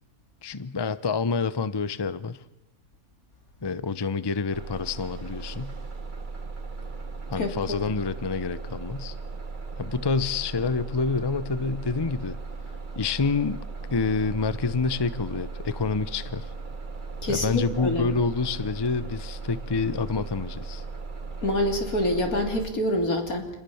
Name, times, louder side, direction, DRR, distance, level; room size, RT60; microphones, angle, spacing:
voice 1, 0.4-2.4 3.6-5.8 7.3-9.2 9.8-12.4 12.9-13.6 13.9-16.5 17.3-20.8, left 4 dB, 25° left, 15 dB, 0.7 m, -27 dB
Bus, 4.5-22.7, right 4 dB, 35° right, 1.6 m, -37 dB
voice 2, 17.2-18.1 21.4-23.5, left 1 dB, 85° left, 4 dB, 3.8 m, -26 dB
27.5 x 19.5 x 7.1 m, 0.93 s
omnidirectional pair, 1.5 m